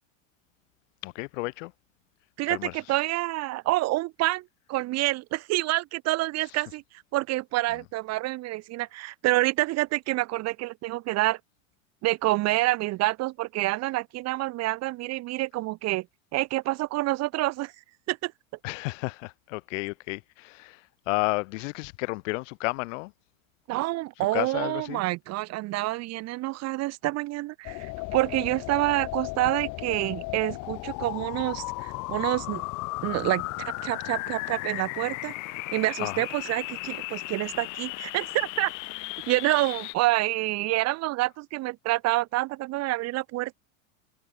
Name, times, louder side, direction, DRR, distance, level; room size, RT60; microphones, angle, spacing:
voice 1, 1.0-1.7 2.5-2.8 18.6-23.1 24.3-25.0 36.0-36.2, left 25 dB, 65° left, 6.8 m, -32 dB
voice 2, 2.4-4.4 4.7-6.8 7.1-11.4 12.0-16.1 16.3-17.7 18.1-18.3 23.7-32.6 33.0-35.3 35.7-38.7 39.3-43.5, right 18 dB, 40° right, 1.1 m, -27 dB
sound 1, 27.6-39.9, left 24 dB, 50° left, 2.4 m, -35 dB
supercardioid pair, 125°, 41 cm